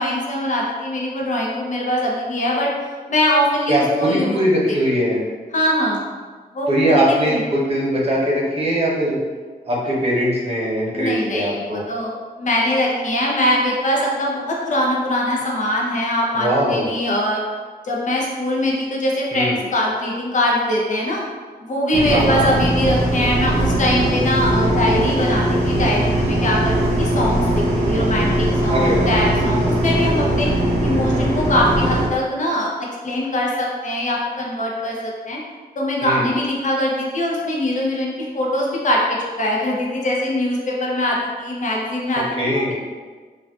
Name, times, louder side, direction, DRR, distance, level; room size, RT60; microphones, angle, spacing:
voice 1, 0.0-2.7 3.1-4.4 5.5-6.0 6.5-7.4 10.9-17.4 17.8-21.2 21.6-30.5 30.8-32.7 33.0-35.4 35.8-42.7, left 1 dB, 50° left, -3 dB, 0.6 m, -22 dB
voice 2, 3.7-5.2 6.7-9.2 9.6-11.8 16.3-16.9 19.3-19.6 22.1-22.5 28.7-29.2 36.0-36.2 42.4-42.7, equal, 35° right, -5 dB, 0.8 m, -20 dB
sound 1, 21.9-32.1, right 1 dB, 90° right, 0.6 m, -20 dB
2.4 x 2.3 x 3.4 m, 1.4 s
cardioid pair, 75°, 17 cm